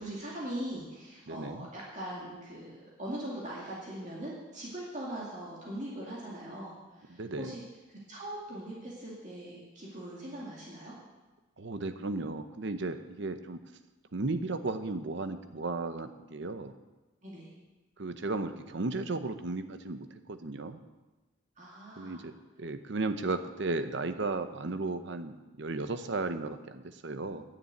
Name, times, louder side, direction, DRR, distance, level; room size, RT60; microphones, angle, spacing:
voice 1, 0.0-7.6 7.9-10.9 17.2-17.5 21.6-22.3, right 1 dB, 35° right, -5 dB, 2.3 m, -41 dB
voice 2, 1.3-1.7 7.2-7.5 11.6-13.6 14.1-16.7 18.0-20.8 22.0-22.3 22.6-27.4, right 3 dB, 55° right, 10 dB, 0.8 m, -35 dB
10.0 x 6.9 x 9.0 m, 1.2 s
head